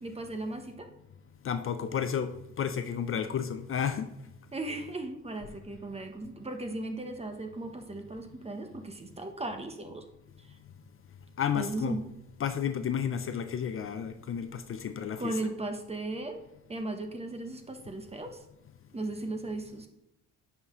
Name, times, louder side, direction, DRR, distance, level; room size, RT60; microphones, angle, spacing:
voice 1, 0.0-0.9 4.5-10.0 10.4-10.6 11.5-12.0 15.2-16.4 16.7-18.4 18.9-19.9, right 2 dB, 20° right, 6 dB, 1.0 m, -37 dB
voice 2, 1.4-2.3 2.6-4.1 11.4-12.0 12.4-15.3, left 8 dB, 45° left, 9 dB, 0.5 m, -31 dB
9.5 x 5.6 x 3.1 m, 0.88 s
cardioid pair, 90°, 30 cm